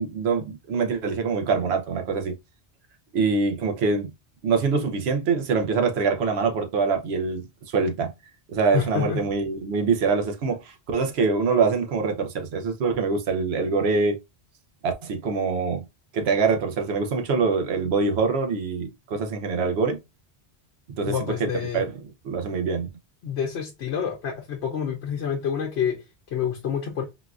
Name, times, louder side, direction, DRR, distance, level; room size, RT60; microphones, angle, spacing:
voice 1, 0.0-2.4 3.1-4.1 4.4-7.5 7.7-8.1 8.5-14.2 14.8-15.8 16.1-20.0 20.9-21.1 21.4-21.5 21.7-21.9 22.2-22.9, right 4 dB, 75° right, 0.9 m, -24 dB
voice 2, 8.7-9.2 21.0-21.9 23.2-27.0, left 8 dB, 80° left, 0.9 m, -28 dB
3.9 x 2.3 x 2.4 m
omnidirectional pair, 1.1 m